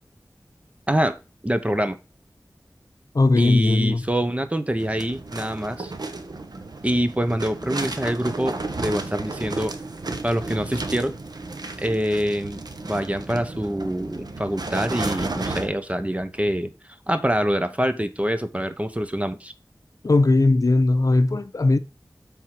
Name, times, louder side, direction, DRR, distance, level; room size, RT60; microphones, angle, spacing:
voice 1, 0.9-1.2 1.4-2.0 3.4-5.9 6.8-9.8 10.2-11.1 11.8-16.7 17.1-19.5, equal, 20° right, 0.9 m, -25 dB
voice 2, 3.1-4.1 20.0-21.8, left 2 dB, 60° left, 0.6 m, -18 dB
sound 1, 4.8-15.7, right 3 dB, 80° right, 1.0 m, -33 dB
7.7 x 3.7 x 5.9 m
wide cardioid pair, 50°, 7 cm